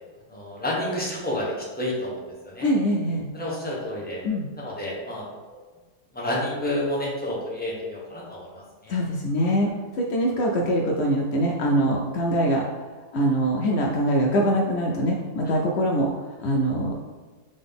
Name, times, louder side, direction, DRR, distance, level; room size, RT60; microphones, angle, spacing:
voice 1, 0.3-2.7 3.3-4.2 4.6-5.6 6.1-9.0 15.4-15.5, left 1 dB, 5° left, -5 dB, 0.8 m, -30 dB
voice 2, 2.6-3.3 4.2-4.5 8.9-12.6 13.1-16.1 16.4-17.0, equal, 90° left, 0 dB, 0.5 m, -23 dB
3.8 x 3.8 x 3.5 m, 1.3 s
omnidirectional pair, 1.7 m